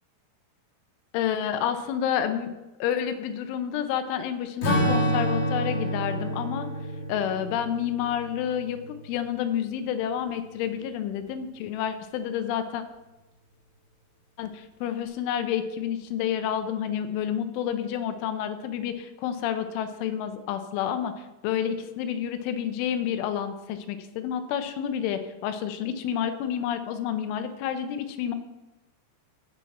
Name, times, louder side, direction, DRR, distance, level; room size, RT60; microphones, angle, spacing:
voice 1, 1.1-2.5 2.8-6.7 7.1-8.8 9.0-12.8 14.4-21.1 21.4-28.3, left 9 dB, 85° left, 8 dB, 3.2 m, -29 dB
Strum, 4.6-9.3, equal, 40° left, 1.7 m, -28 dB
15.5 x 7.2 x 4.1 m, 1.0 s
omnidirectional pair, 5.5 m